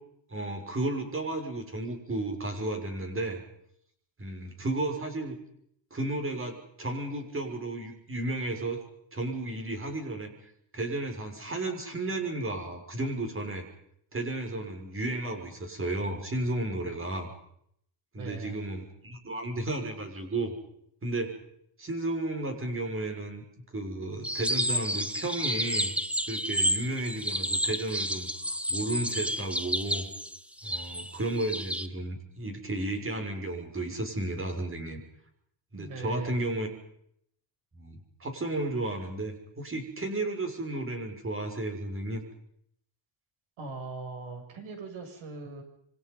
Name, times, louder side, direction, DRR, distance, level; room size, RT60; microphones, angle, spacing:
voice 1, 0.3-3.4 4.2-5.4 5.9-8.8 9.1-10.3 10.7-13.6 14.1-17.3 18.1-20.5 21.0-21.4 21.8-23.4 23.7-25.9 26.3-30.1 30.6-35.0 35.7-36.7 37.8-42.2, right 2 dB, 25° right, 5 dB, 6.2 m, -33 dB
voice 2, 18.2-18.6 35.7-36.4 43.6-45.6, right 3 dB, 70° right, 5 dB, 7.6 m, -40 dB
sound 1, 24.2-31.9, equal, ahead, 1.2 m, -31 dB
27.5 x 25.0 x 5.6 m, 0.69 s
cardioid pair, 140°, 49 cm